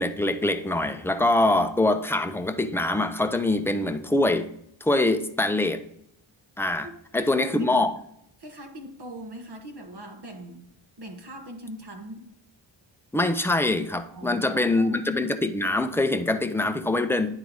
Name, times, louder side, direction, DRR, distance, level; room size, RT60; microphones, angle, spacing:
voice 1, 0.0-4.5 4.8-5.8 6.6-7.9 13.1-17.3, left 2 dB, 5° left, 0.7 m, -24 dB
voice 2, 6.8-7.8 8.4-10.7 11.0-12.3 14.1-15.1, right 1 dB, 55° right, 1.5 m, -41 dB
9.5 x 3.8 x 4.7 m
cardioid pair, 65°, 49 cm